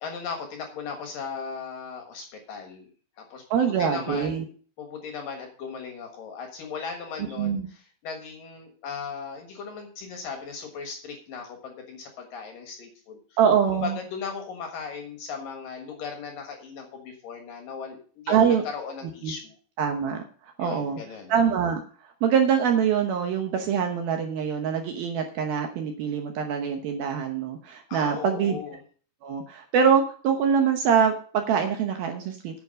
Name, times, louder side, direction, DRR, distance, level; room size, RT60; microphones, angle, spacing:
voice 1, 0.0-2.9 3.2-4.5 4.8-13.4 13.7-19.5 20.6-21.3 27.9-28.8, left 5 dB, 60° left, 4 dB, 2.6 m, -37 dB
voice 2, 3.5-4.4 7.2-7.7 13.4-14.0 18.3-18.6 19.2-19.3 19.8-21.0 21.3-21.8 22.2-28.6 29.2-32.6, right 7 dB, 70° right, 4 dB, 2.4 m, -24 dB
9.4 x 7.2 x 6.4 m, 0.42 s
omnidirectional pair, 5.3 m